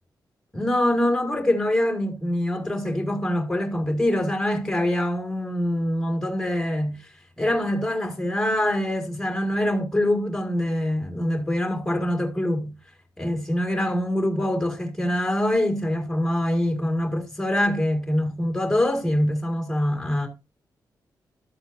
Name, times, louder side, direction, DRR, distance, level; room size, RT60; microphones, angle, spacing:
voice 1, 0.5-7.0 7.4-12.7 13.2-20.3, left 1 dB, 5° left, 1.8 m, -24 dB
12.5 x 7.9 x 2.5 m
wide cardioid pair, 160°, 7 cm